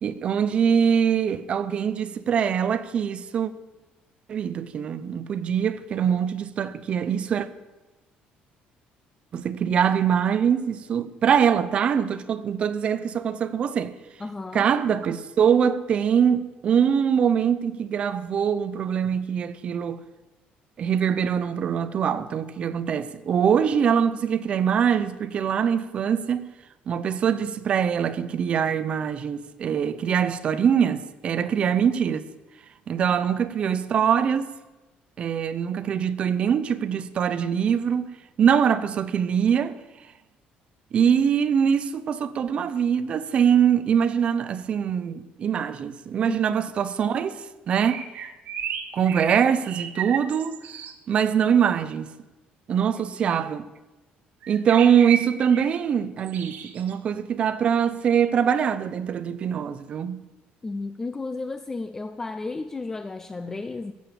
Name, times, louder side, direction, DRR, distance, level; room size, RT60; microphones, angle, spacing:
voice 1, 0.0-3.5 4.3-7.5 9.3-13.9 14.5-20.0 20.8-26.5 26.9-32.3 32.9-34.5 35.2-38.1 38.4-39.8 40.9-48.0 48.9-50.6 51.1-52.1 52.7-53.7 54.5-60.2, right 8 dB, 35° right, 0.7 m, -23 dB
voice 2, 14.2-14.7 46.2-46.6 53.0-53.4 60.6-63.9, left 3 dB, 15° left, 0.4 m, -33 dB
sound 1, 47.8-50.9 54.4-55.7 56.2-56.9, right 8 dB, 60° right, 1.3 m, -34 dB
15.5 x 7.0 x 8.3 m
cardioid pair, 175°, 3 cm